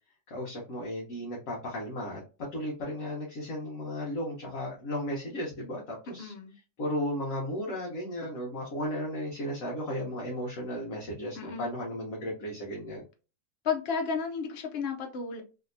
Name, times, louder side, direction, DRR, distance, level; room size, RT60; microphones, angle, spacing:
voice 1, 0.3-2.2 2.5-6.3 6.8-13.0, equal, 55° left, 1.2 m, -35 dB
voice 2, 6.2-6.5 11.4-11.7 13.6-15.4, left 5 dB, 80° left, 0.5 m, -32 dB
3.3 x 2.8 x 2.5 m
omnidirectional pair, 1.9 m